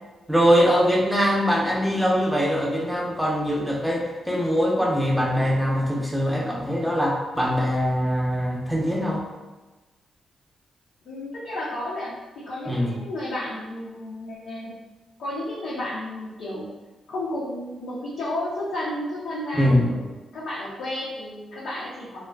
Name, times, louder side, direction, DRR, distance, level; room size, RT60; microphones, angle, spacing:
voice 1, 0.3-9.2 12.7-12.9 19.6-19.9, equal, 5° right, -2 dB, 0.6 m, -22 dB
voice 2, 11.0-12.1 12.5-14.7 15.2-16.7 17.1-20.1 20.3-22.2, left 1 dB, 80° left, -9 dB, 0.6 m, -32 dB
2.4 x 2.3 x 2.2 m, 1.2 s
cardioid pair, 60°, 0 cm